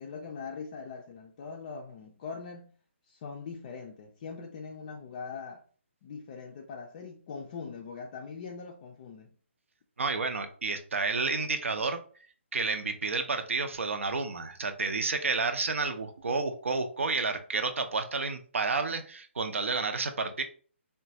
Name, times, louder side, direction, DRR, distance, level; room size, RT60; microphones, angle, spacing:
voice 1, 0.0-2.7 3.1-5.6 6.0-9.4, left 5 dB, 35° left, 0.4 m, -42 dB
voice 2, 10.0-12.0 12.5-20.4, right 4 dB, 75° right, 0.6 m, -30 dB
3.7 x 2.2 x 2.8 m
hypercardioid pair, 150°, 7 cm